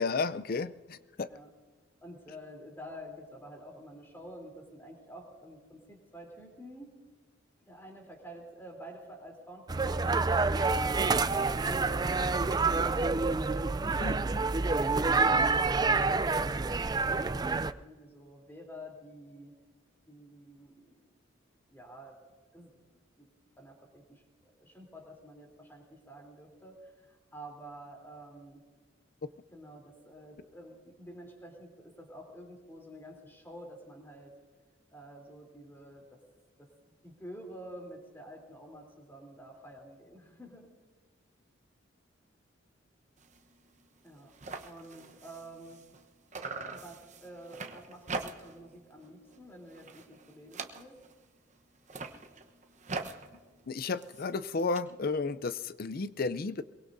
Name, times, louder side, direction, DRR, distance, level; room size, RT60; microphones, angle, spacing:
voice 1, 0.0-1.3 14.0-14.1 53.7-56.6, left 4 dB, 50° left, 15 dB, 0.5 m, -32 dB
voice 2, 2.0-6.9 7.7-13.3 14.0-19.5 20.1-21.1 21.7-22.2 22.5-22.8 23.2-23.3 23.6-28.6 29.3-34.3 34.9-36.2 36.6-36.7 37.0-40.7 44.0-44.3 44.6-45.8 46.7-51.0, right 1 dB, 10° left, 1 dB, 3.4 m, -49 dB
sound 1, 9.7-17.7, right 3 dB, 20° right, 0.4 m, -27 dB
sound 2, 43.2-43.4 43.8-43.9 44.1-46.1 46.3-48.7 49.0-49.4 49.7-51.2 51.8-54.8, right 3 dB, 40° right, 1.0 m, -43 dB
23.0 x 22.5 x 2.7 m, 1.4 s
head